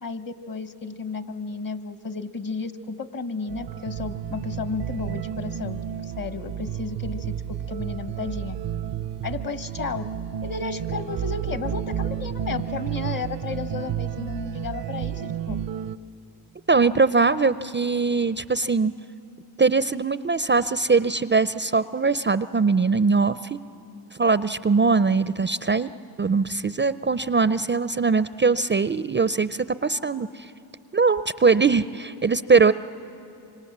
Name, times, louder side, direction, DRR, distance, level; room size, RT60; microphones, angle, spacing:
voice 1, 0.0-7.3 7.7-8.6 9.2-10.0 10.4-15.6, left 4 dB, 50° left, 11 dB, 1.3 m, -33 dB
sound 1, 3.5-16.0, right 9 dB, 70° right, 0.7 m, -31 dB
voice 2, 16.7-18.9 19.6-23.6 24.1-25.9 26.2-30.5 30.9-32.7, right 4 dB, 25° right, 15 dB, 0.5 m, -21 dB
25.5 x 25.0 x 7.4 m, 2.7 s
supercardioid pair, 45°, 44 cm